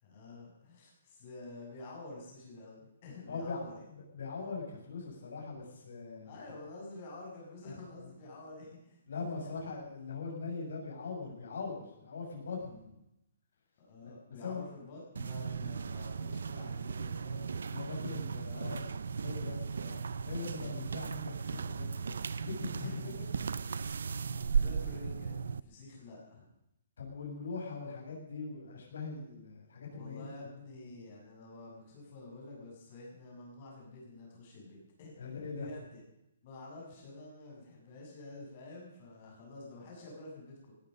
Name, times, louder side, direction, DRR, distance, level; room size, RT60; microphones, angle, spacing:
voice 1, 0.0-3.8 6.2-9.0 9.3-9.4 12.6-13.0 13.8-17.5 18.5-18.9 22.8-23.3 24.6-26.4 29.9-36.0 36.4-40.7, left 2 dB, 30° left, -2 dB, 7.3 m, -49 dB
voice 2, 3.3-3.6 3.9-6.3 7.7-7.8 9.1-12.8 14.0-14.2 14.4-14.6 17.7-18.9 19.2-22.9 23.2-23.3 27.0-30.5 35.2-35.7, left 4 dB, 70° left, -1 dB, 7.5 m, -41 dB
sound 1, 15.2-25.6, right 5 dB, 80° right, 0.7 m, -36 dB
18.5 x 13.5 x 5.4 m, 0.84 s
hypercardioid pair, 175°, 0 cm